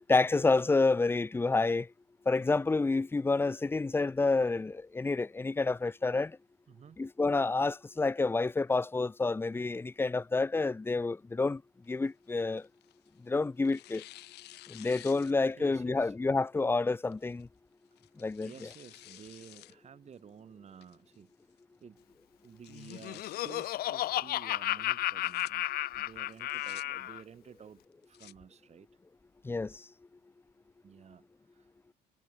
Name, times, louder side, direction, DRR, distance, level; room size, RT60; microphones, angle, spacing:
voice 1, 0.1-1.9 2.3-6.4 7.0-11.6 11.9-12.7 13.2-14.0 14.7-17.5 18.2-18.7 29.4-29.8, left 3 dB, 15° left, 0.6 m, -29 dB
voice 2, 6.7-7.0 15.5-16.1 18.4-21.3 21.8-22.2 22.4-25.7 25.9-27.8 28.1-28.9 30.8-31.7, right 7 dB, 40° right, 3.2 m, -52 dB
Tearing, 11.8-13.2 13.6-15.7 16.1-16.2 17.1-17.4 18.0-19.7 20.1-20.2 20.8-21.2 21.6-21.7 22.0-22.1 22.4-23.7 25.0-25.5 26.3-26.8 27.8-28.3, left 17 dB, 80° left, 1.9 m, -53 dB
Laughter, 22.7-27.2, left 15 dB, 65° left, 0.5 m, -33 dB
cardioid pair, 110°, 17 cm